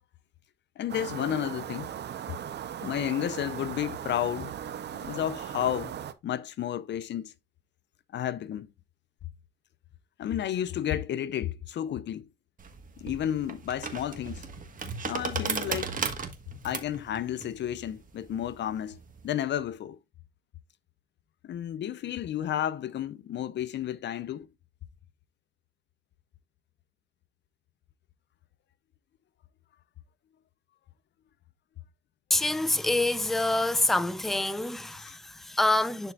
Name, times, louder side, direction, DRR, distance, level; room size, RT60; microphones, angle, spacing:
voice 1, 0.8-1.9 2.8-4.5 5.0-5.9 6.2-7.3 8.1-8.7 10.2-12.3 13.0-14.4 15.1-15.9 16.6-20.0 21.4-24.5, left 11 dB, 65° left, 0.6 m, -32 dB
sound 1, 0.9-6.1, right 9 dB, 60° right, 0.8 m, -38 dB
sound 2, 12.6-19.3, right 5 dB, 45° right, 1.5 m, -36 dB
voice 2, 32.3-36.1, left 2 dB, ahead, 0.5 m, -26 dB
11.0 x 4.5 x 2.4 m
cardioid pair, 90°, 20 cm